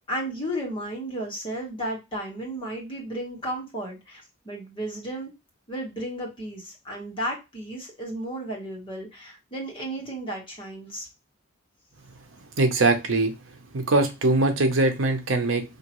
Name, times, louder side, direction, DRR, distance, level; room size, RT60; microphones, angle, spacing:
voice 1, 0.1-5.3 5.7-11.1, right 1 dB, 25° left, 1.3 m, -33 dB
voice 2, 12.6-13.3 13.7-15.6, right 2 dB, 70° right, 0.8 m, -22 dB
5.0 x 2.9 x 3.0 m
head